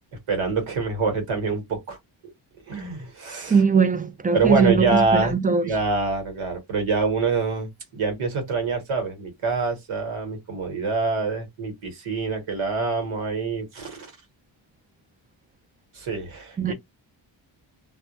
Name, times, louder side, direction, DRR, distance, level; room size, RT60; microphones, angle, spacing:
voice 1, 0.3-2.0 2.7-3.6 4.3-5.3 5.6-14.1 15.9-16.7, right 4 dB, 75° right, 1.2 m, -25 dB
voice 2, 3.4-5.7 16.6-16.7, right 5 dB, 20° right, 0.3 m, -21 dB
2.2 x 2.0 x 2.8 m
cardioid pair, 55°, 49 cm